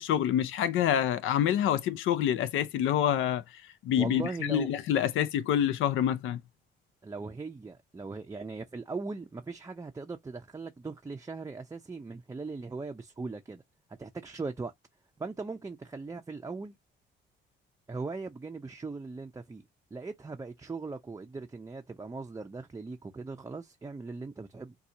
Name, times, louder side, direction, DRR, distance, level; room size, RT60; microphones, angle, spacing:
voice 1, 0.0-6.4, left 10 dB, 80° left, 0.5 m, -27 dB
voice 2, 4.0-4.7 7.0-13.6 14.0-14.7 15.2-16.8 17.9-19.6 19.9-24.8, right 3 dB, 15° right, 0.5 m, -39 dB
4.1 x 2.3 x 2.6 m
cardioid pair, 90°, 20 cm